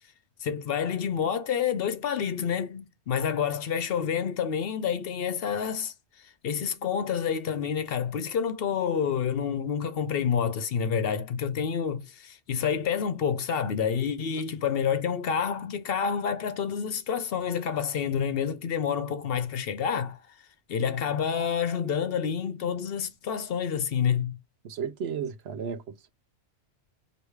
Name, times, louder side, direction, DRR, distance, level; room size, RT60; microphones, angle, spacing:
voice 1, 0.4-5.9 6.4-20.2 20.7-24.4, left 7 dB, 60° left, 0.8 m, -28 dB
voice 2, 24.6-26.1, right 7 dB, 65° right, 0.8 m, -34 dB
4.7 x 2.8 x 3.1 m
omnidirectional pair, 1.2 m